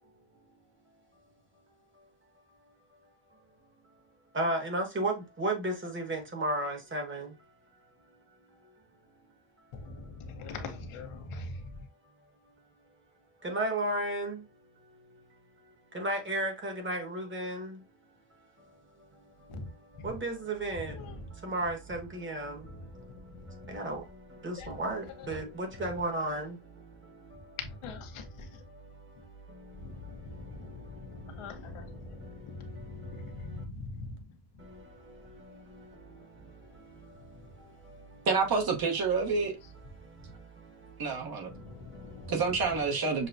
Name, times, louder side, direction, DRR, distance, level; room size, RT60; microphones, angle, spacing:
voice 1, 4.3-7.5 9.8-10.0 13.4-14.5 14.8-15.2 15.6-17.8 18.3-18.7 19.0-27.6 28.1-33.6 34.6-38.3 40.0-42.3, right 1 dB, 25° right, 1.2 m, -37 dB
voice 2, 9.7-11.5 19.5-19.7 21.0-21.1 24.6-24.7 27.8-28.2 30.5-30.7 31.2-31.8 32.9-34.1 41.8-41.9, left 3 dB, 80° left, 1.1 m, -41 dB
voice 3, 38.3-39.5 41.0-41.5 42.3-43.3, right 4 dB, 45° right, 1.0 m, -28 dB
6.5 x 2.2 x 2.5 m
cardioid pair, 130°, 50 cm